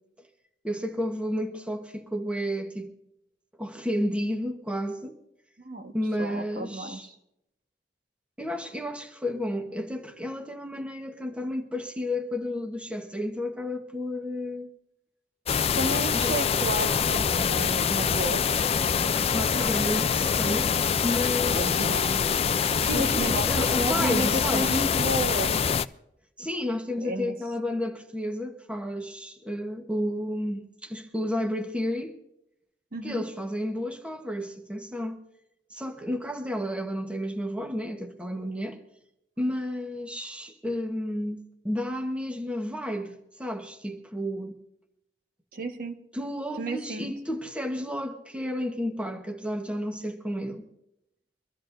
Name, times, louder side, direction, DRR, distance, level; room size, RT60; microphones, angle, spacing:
voice 1, 0.6-2.9 3.6-5.2 5.9-7.1 8.4-14.7 16.1-16.3 19.1-20.7 21.0-21.8 22.9-24.9 26.4-32.2 33.0-35.2 35.7-38.8 39.4-44.5 46.1-50.7, left 1 dB, 5° right, 1.2 m, -32 dB
voice 2, 6.2-7.0 15.7-18.6 21.4-22.3 22.8-25.6 27.0-27.4 32.9-33.3 45.5-46.0 46.6-47.1, right 1 dB, 55° right, 1.4 m, -32 dB
sound 1, 15.5-25.8, left 7 dB, 35° left, 0.4 m, -25 dB
24.0 x 13.5 x 2.6 m
head